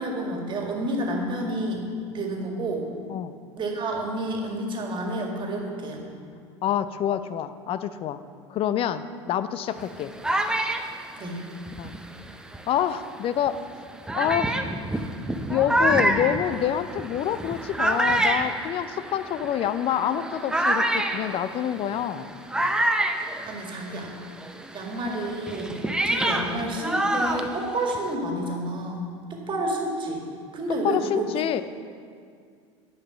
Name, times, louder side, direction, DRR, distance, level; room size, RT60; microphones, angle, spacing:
voice 1, 0.0-1.9 2.1-2.8 3.6-6.0 11.2-11.4 23.4-24.1 24.7-25.8 26.1-29.1 29.5-30.2 30.5-31.3, right 1 dB, 30° right, 0 dB, 1.9 m, -29 dB
voice 2, 6.6-8.2 8.5-10.1 11.8-11.9 12.7-13.6 14.2-14.5 15.5-22.3 30.8-31.6, left 10 dB, 35° left, 13 dB, 0.5 m, -27 dB
sound 1, 9.8-12.8 13.5-13.6 14.1-24.1 24.4-28.1, right 1 dB, 5° right, 0.6 m, -27 dB
9.9 x 5.6 x 6.9 m, 2.1 s
figure-of-eight pair, 75°, 16 cm